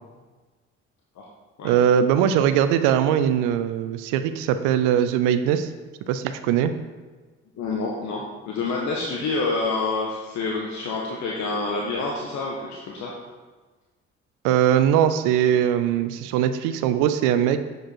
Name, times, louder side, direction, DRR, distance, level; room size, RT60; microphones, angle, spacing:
voice 1, 1.6-5.7 6.1-6.7 14.4-17.6, right 9 dB, 85° right, 10 dB, 0.5 m, -21 dB
voice 2, 7.5-13.1, left 3 dB, 70° left, -3 dB, 1.2 m, -27 dB
7.7 x 5.1 x 4.4 m, 1.3 s
supercardioid pair, 60°, 30 cm